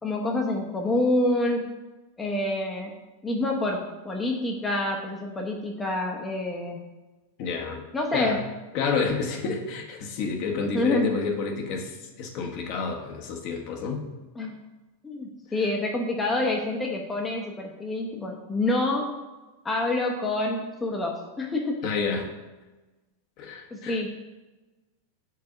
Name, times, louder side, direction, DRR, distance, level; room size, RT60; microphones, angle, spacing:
voice 1, 0.0-1.7 2.2-2.9 3.2-6.8 7.9-8.4 10.7-11.1 14.4-14.6 15.0-19.2 19.6-21.8 23.7-24.1, left 2 dB, 15° left, 0 dB, 0.8 m, -27 dB
voice 2, 7.4-7.9 8.1-8.4 8.7-14.0 21.8-22.3 23.4-24.0, left 5 dB, 45° left, 2 dB, 1.1 m, -29 dB
4.8 x 4.7 x 5.9 m, 1.2 s
figure-of-eight pair, 90°, 0 cm